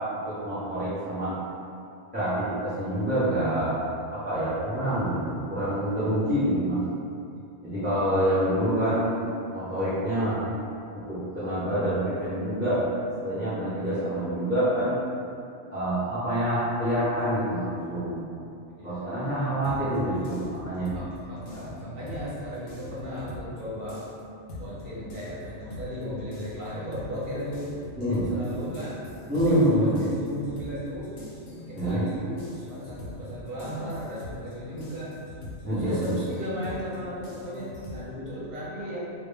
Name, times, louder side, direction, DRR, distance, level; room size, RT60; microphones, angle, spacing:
voice 1, 0.0-1.3 2.1-3.8 4.1-6.8 7.6-9.1 9.5-10.4 10.9-12.8 13.2-15.0 15.7-18.2 18.8-20.9 21.5-21.7 28.0-28.3 29.3-30.0 31.7-32.0 35.6-36.2, right 1 dB, 10° right, -15 dB, 0.5 m, -26 dB
voice 2, 8.1-8.5 13.8-14.2 18.8-19.0 19.5-19.9 20.9-24.0 24.6-27.7 28.0-29.0 29.3-31.1 31.7-35.1 35.7-39.1, equal, 50° right, -8 dB, 0.8 m, -36 dB
sound 1, 19.6-23.6 23.9-38.1, left 2 dB, 90° left, 0.9 m, -42 dB
2.1 x 2.1 x 3.2 m, 2.6 s
omnidirectional pair, 1.2 m